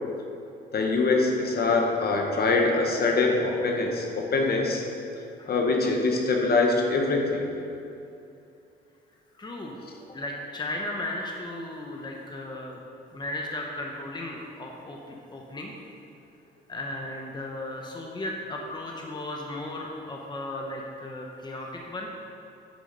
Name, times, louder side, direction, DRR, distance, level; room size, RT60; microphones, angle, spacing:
voice 1, 0.7-4.8 5.5-7.5, left 3 dB, 50° left, 1 dB, 1.3 m, -24 dB
voice 2, 9.4-9.8 10.1-12.8 13.1-15.7 16.7-22.1, left 1 dB, 20° left, 0 dB, 0.9 m, -35 dB
9.2 x 5.0 x 5.2 m, 2.7 s
cardioid pair, 90°, 20 cm